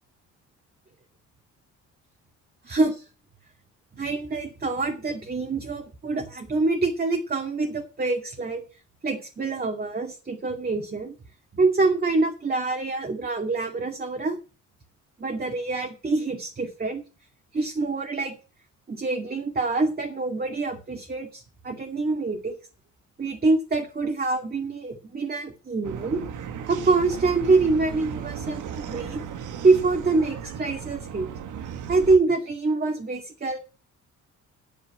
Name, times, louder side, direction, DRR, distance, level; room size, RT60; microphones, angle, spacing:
voice 1, 2.6-3.0 3.9-8.6 9.0-11.1 11.5-14.4 15.2-17.0 17.5-18.3 18.9-22.5 23.2-26.2 26.7-29.2 29.6-31.3 31.9-33.6, right 3 dB, 30° right, 3 dB, 2.4 m, -25 dB
sound 1, 25.8-32.2, right 8 dB, 80° right, 1.6 m, -36 dB
9.1 x 8.7 x 8.7 m, 0.36 s
cardioid pair, 90°, 30 cm